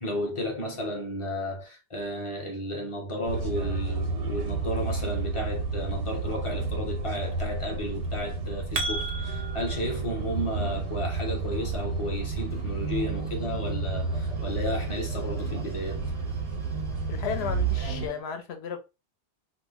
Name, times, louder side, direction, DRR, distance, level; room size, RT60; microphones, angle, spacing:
voice 1, 0.0-16.1, equal, 35° left, 0.6 m, -33 dB
sound 1, 3.2-18.1, right 4 dB, 90° right, 1.1 m, -31 dB
sound 2, 8.3-9.8, right 2 dB, 55° right, 0.5 m, -33 dB
sound 3, 12.2-18.2, left 1 dB, 5° left, 0.3 m, -50 dB
voice 2, 17.1-18.8, left 7 dB, 70° left, 0.9 m, -34 dB
2.4 x 2.0 x 3.3 m
omnidirectional pair, 1.1 m